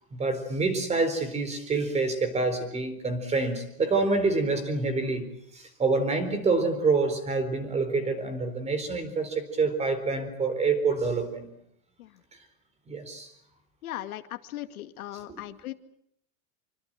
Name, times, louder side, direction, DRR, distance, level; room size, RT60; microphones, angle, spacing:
voice 1, 0.2-5.3 5.5-11.5 12.9-13.3, right 3 dB, 15° right, 11 dB, 4.2 m, -27 dB
voice 2, 13.8-15.7, left 14 dB, 85° left, 8 dB, 2.3 m, -38 dB
26.5 x 24.5 x 7.6 m, 0.72 s
supercardioid pair, 160°, 42 cm